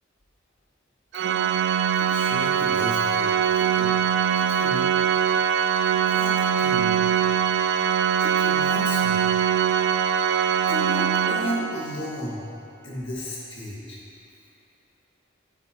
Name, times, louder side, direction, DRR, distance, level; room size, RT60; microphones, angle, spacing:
Organ, 1.1-12.0, right 8 dB, 60° right, 0.3 m, -22 dB
voice 1, 2.1-3.9 4.5-4.9 6.1-7.1 8.2-9.3 10.7-12.4 12.8-14.0, equal, 60° left, -6 dB, 2.0 m, -34 dB
9.9 x 8.1 x 3.1 m, 2.7 s
head